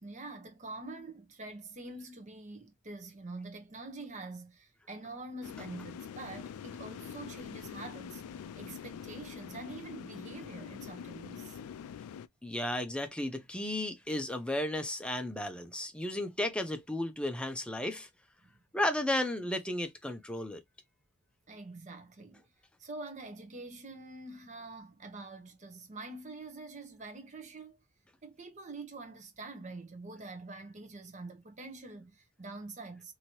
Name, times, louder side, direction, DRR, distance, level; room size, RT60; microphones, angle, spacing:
voice 1, 0.0-11.6 18.4-18.5 21.5-22.4 22.8-27.8 28.2-33.1, right 2 dB, 35° right, 0.8 m, -45 dB
sound 1, 5.4-12.3, left 7 dB, 90° left, 0.3 m, -45 dB
voice 2, 12.4-18.1 18.7-20.6, left 1 dB, 5° left, 0.5 m, -34 dB
2.9 x 2.7 x 2.8 m
head